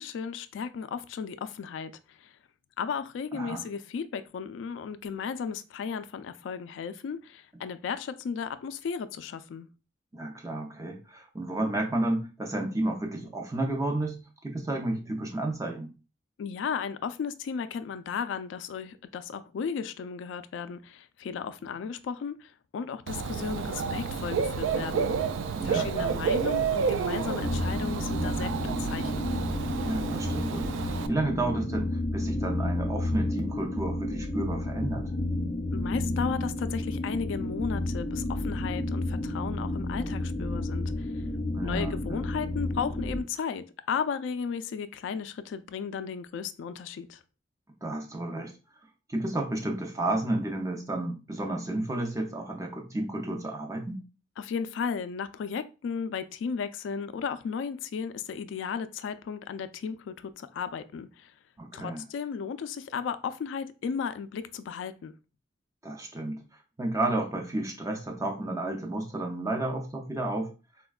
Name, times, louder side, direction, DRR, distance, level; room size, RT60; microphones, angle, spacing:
voice 1, 0.0-2.3 2.8-9.7 16.4-25.1 25.6-29.3 35.7-41.2 41.6-47.2 54.4-61.3 61.7-65.1, left 6 dB, 80° left, 0.3 m, -35 dB
voice 2, 3.3-3.6 10.1-15.9 25.6-26.2 29.8-35.1 41.5-42.2 47.8-48.5 49.1-54.0 61.6-62.0 65.8-66.4 66.8-70.5, right 2 dB, 15° right, 0.5 m, -32 dB
Dog / Bird, 23.1-31.1, right 5 dB, 90° right, 0.3 m, -30 dB
sound 1, 27.4-43.2, left 1 dB, 30° left, 0.6 m, -31 dB
4.2 x 2.2 x 2.3 m
head